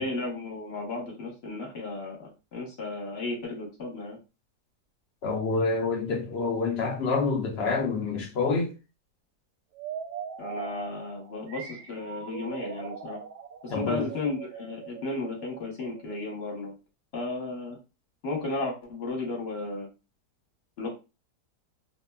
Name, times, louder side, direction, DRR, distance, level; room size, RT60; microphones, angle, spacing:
voice 1, 0.0-4.2 10.4-13.2 13.6-16.8 17.1-17.8 18.2-19.9 20.8-20.9, left 2 dB, 45° left, 1.0 m, -34 dB
voice 2, 5.2-8.7 13.7-14.1, left 4 dB, 75° left, 0.5 m, -27 dB
sound 1, 9.7-16.4, right 8 dB, 90° right, 1.2 m, -41 dB
3.0 x 2.1 x 2.2 m
omnidirectional pair, 1.7 m